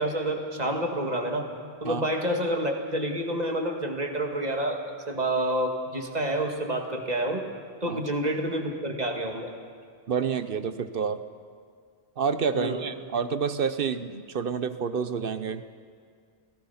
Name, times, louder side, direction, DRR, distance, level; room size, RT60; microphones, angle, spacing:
voice 1, 0.0-1.5 1.8-7.4 7.8-9.5 12.5-12.8, right 1 dB, 35° right, 2 dB, 2.1 m, -28 dB
voice 2, 10.1-11.2 12.2-15.9, right 6 dB, 55° right, 12 dB, 0.9 m, -29 dB
28.0 x 17.5 x 5.7 m, 2.1 s
omnidirectional pair, 1.2 m